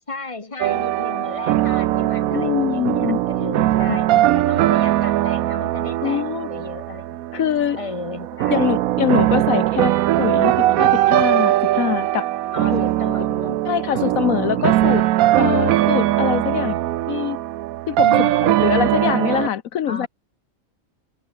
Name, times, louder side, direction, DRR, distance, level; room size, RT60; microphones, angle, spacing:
voice 1, 0.1-7.4 7.7-8.7 10.6-10.9 12.5-13.6 13.9-14.9 16.4-16.9 18.0-18.5 19.9-20.1, left 3 dB, 25° left, 2.1 m, -34 dB
sound 1, 0.6-19.5, right 14 dB, 85° right, 1.1 m, -20 dB
voice 2, 2.3-3.2 3.9-4.3 6.0-6.5 7.3-7.8 8.5-9.9 10.2-12.3 12.7-12.8 13.7-15.0 15.4-16.7 17.1-17.4 17.9-18.1 18.4-20.1, left 10 dB, 75° left, 1.3 m, -23 dB
omnidirectional pair, 1.4 m